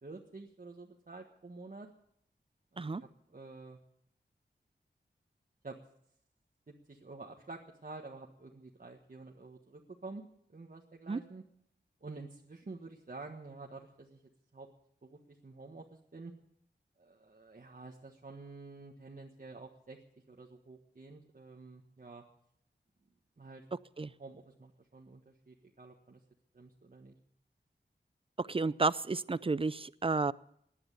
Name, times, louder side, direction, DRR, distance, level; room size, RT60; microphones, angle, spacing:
voice 1, 0.0-1.9 2.7-3.8 5.6-5.8 6.7-10.2 10.5-11.4 12.0-14.2 14.5-14.7 15.0-16.3 17.0-20.0 20.3-22.2 23.4-23.6 24.2-26.2 26.5-27.2, right 3 dB, 50° right, 0 dB, 1.5 m, -49 dB
voice 2, 28.4-30.3, right 3 dB, 30° right, 18 dB, 0.5 m, -31 dB
18.0 x 10.5 x 6.8 m, 0.71 s
wide cardioid pair, 75°, 19 cm